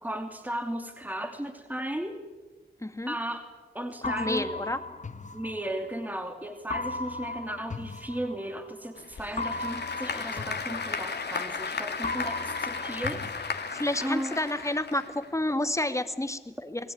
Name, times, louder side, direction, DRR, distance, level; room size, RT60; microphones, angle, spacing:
voice 1, 0.0-2.2 3.1-3.5 3.7-4.5 5.3-13.6 14.0-14.4, right 1 dB, 10° right, 5 dB, 2.7 m, -35 dB
voice 2, 2.8-3.2 4.0-4.8 13.7-16.9, left 1 dB, 15° left, 9 dB, 2.1 m, -30 dB
sound 1, 4.0-6.1 6.7-8.8 9.4-11.7 12.0-14.1, left 3 dB, 45° left, 1.5 m, -37 dB
Applause / Crowd, 9.0-15.5, left 5 dB, 75° left, 2.4 m, -35 dB
29.0 x 19.5 x 9.5 m, 1.2 s
wide cardioid pair, 75°, 17 cm